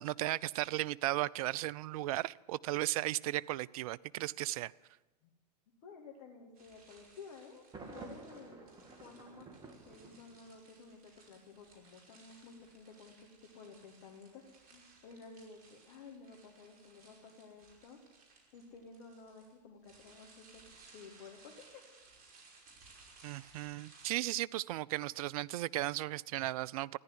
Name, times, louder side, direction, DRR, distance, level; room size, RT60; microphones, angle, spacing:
voice 1, 0.0-4.7 23.2-27.0, right 16 dB, 60° right, 0.5 m, -36 dB
voice 2, 5.8-9.5 9.9-18.0 18.5-20.6 20.9-21.8, left 4 dB, 55° left, 2.6 m, -54 dB
sound 1, 6.5-24.1, right 3 dB, 45° right, 5.3 m, -62 dB
Thunder, 7.7-10.7, right 3 dB, 20° right, 2.3 m, -51 dB
14.5 x 10.5 x 9.7 m
hypercardioid pair, 100°, 21 cm